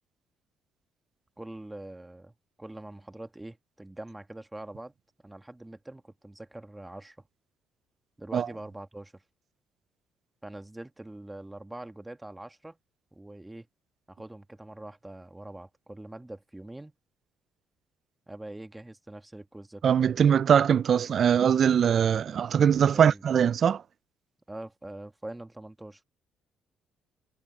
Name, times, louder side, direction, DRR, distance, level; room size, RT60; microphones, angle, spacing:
voice 1, 1.4-4.9 5.2-7.2 8.2-9.2 10.4-12.8 13.1-13.7 14.1-16.9 18.3-19.9 22.9-23.2 24.5-26.0, right 1 dB, 10° right, 1.8 m, -43 dB
voice 2, 19.8-23.8, right 8 dB, 55° right, 0.5 m, -22 dB
supercardioid pair, 75°, 0 cm